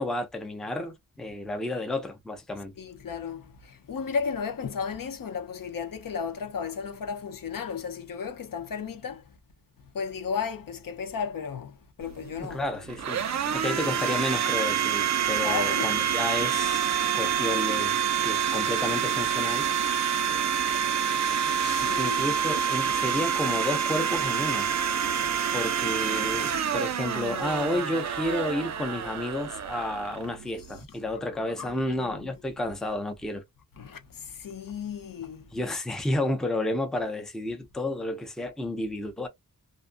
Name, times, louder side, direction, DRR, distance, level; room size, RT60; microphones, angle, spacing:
voice 1, 0.0-2.7 12.4-13.2 13.5-16.9 17.1-19.7 21.9-24.7 25.5-33.4 35.5-39.3, left 1 dB, ahead, 0.5 m, -31 dB
voice 2, 2.8-9.2 9.9-12.6 15.4-16.0 21.6-22.2 31.6-32.3 33.8-35.5, left 6 dB, 75° left, 0.7 m, -34 dB
Domestic sounds home sounds, 12.0-30.8, right 8 dB, 55° right, 0.5 m, -27 dB
2.6 x 2.4 x 2.5 m
wide cardioid pair, 170°, 34 cm